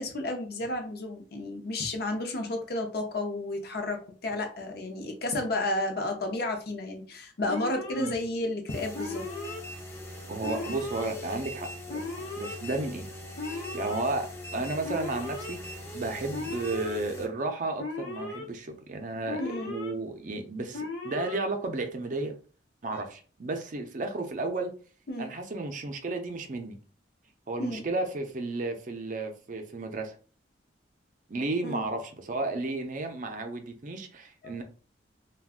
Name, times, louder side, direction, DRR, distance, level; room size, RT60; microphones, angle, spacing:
voice 1, 0.0-9.2 19.4-19.8 22.9-23.0 25.1-25.3 27.6-27.8 31.6-31.9 34.4-34.6, left 2 dB, 55° left, 4 dB, 0.6 m, -32 dB
Alarm, 7.5-8.1 8.9-9.6 10.4-11.1 11.9-12.5 13.4-14.0 14.8-15.5 16.3-17.0 17.8-18.4 19.3-19.9 20.7-21.4, left 3 dB, 85° left, 0.8 m, -37 dB
sound 1, 8.7-17.3, left 1 dB, 15° left, 0.5 m, -41 dB
voice 2, 10.3-12.0 12.4-13.1 13.5-22.3 22.8-24.7 25.2-26.8 27.5-30.1 31.3-34.6, right 2 dB, 45° right, 5 dB, 0.5 m, -33 dB
2.5 x 2.2 x 3.6 m, 0.38 s
head